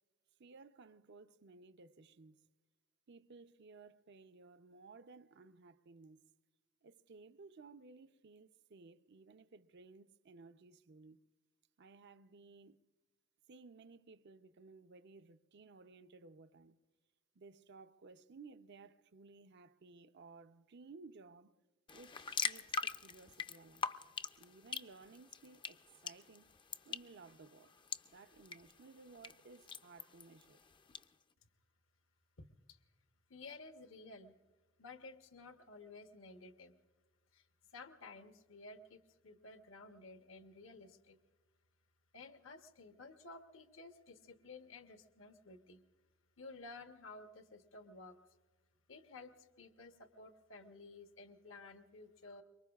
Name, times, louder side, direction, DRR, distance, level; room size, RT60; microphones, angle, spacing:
voice 1, 0.4-2.5 3.1-6.3 6.8-11.2 11.8-12.8 13.5-16.8 17.3-21.6 21.9-23.9 24.4-26.6 26.8-27.7 28.0-30.6, right 4 dB, 60° right, 0.6 m, -58 dB
sound 1, 21.9-31.0, left 5 dB, 25° left, 0.5 m, -44 dB
voice 2, 32.4-32.8 33.3-34.3 34.8-36.8 37.3-37.5 37.7-41.2 42.1-45.8 46.4-48.2 48.9-52.4, left 3 dB, 70° left, 1.0 m, -54 dB
25.0 x 23.0 x 2.4 m
head